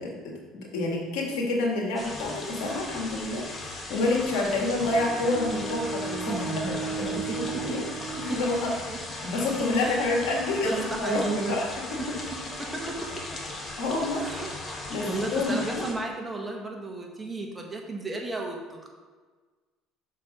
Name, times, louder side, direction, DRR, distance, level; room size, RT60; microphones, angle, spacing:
voice 1, 0.0-7.8 8.2-8.7 9.2-11.7 12.1-12.2 13.8-14.2 14.9-15.9, left 2 dB, 80° left, -1 dB, 1.9 m, -28 dB
sound 1, 1.9-15.9, left 2 dB, 30° left, 1.3 m, -37 dB
Bowed string instrument, 4.8-9.0, right 5 dB, 5° left, 1.5 m, -36 dB
voice 2, 6.3-6.7 7.0-7.8 8.3-8.4 8.9-9.0 9.8-10.0 10.6-11.6 12.0-12.1 12.4-13.0 14.2-14.5 14.9-18.9, right 3 dB, 15° right, 0 dB, 1.4 m, -34 dB
6.5 x 4.5 x 5.1 m, 1.4 s
supercardioid pair, 95°, 0 cm